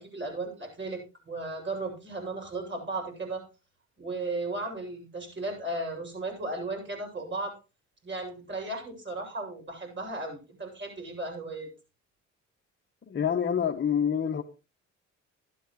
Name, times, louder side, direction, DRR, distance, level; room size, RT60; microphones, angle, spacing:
voice 1, 0.0-3.4 4.0-7.5 8.0-11.7, right 2 dB, 40° right, 1 dB, 7.3 m, -35 dB
voice 2, 13.1-14.4, left 8 dB, 40° left, 3 dB, 1.3 m, -27 dB
13.0 x 12.0 x 3.2 m, 0.29 s
cardioid pair, 90°, 30 cm